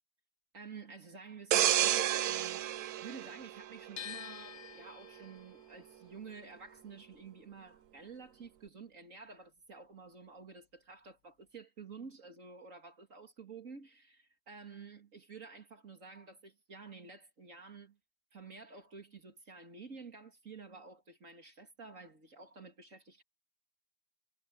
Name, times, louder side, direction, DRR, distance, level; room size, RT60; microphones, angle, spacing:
voice 1, 0.5-2.6 3.0-18.0 18.3-23.2, right 5 dB, 55° right, 2.9 m, -51 dB
sound 1, 1.5-4.2 4.6-4.9, right 12 dB, 75° right, 1.2 m, -31 dB
sound 2, 4.0-10.0 10.3-11.6, left 8 dB, 75° left, 1.5 m, -51 dB
omnidirectional pair, 1.7 m